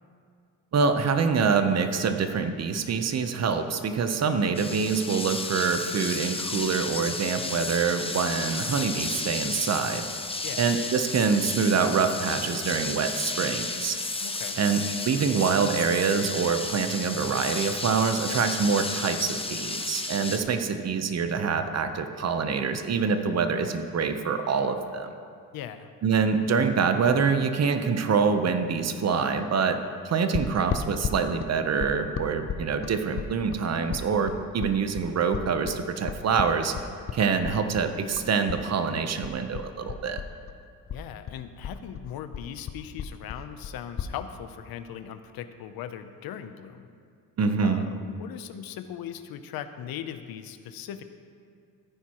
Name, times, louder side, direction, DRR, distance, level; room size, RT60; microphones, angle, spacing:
voice 1, 0.7-10.1 10.6-14.0 14.6-25.1 26.0-29.8 30.0-36.7 37.1-40.2 47.4-47.9, right 5 dB, 45° right, 8 dB, 0.8 m, -25 dB
sound 1, 4.5-20.4, left 3 dB, 15° left, 0.8 m, -33 dB
voice 2, 14.2-14.6 25.5-25.9 40.9-46.9 47.6-51.0, left 9 dB, 80° left, 10 dB, 0.7 m, -39 dB
sound 2, 30.3-38.6 38.9-40.6 40.9-44.1, left 7 dB, 40° left, 0.5 m, -34 dB
14.5 x 9.3 x 3.0 m, 2.2 s
cardioid pair, 95°, 36 cm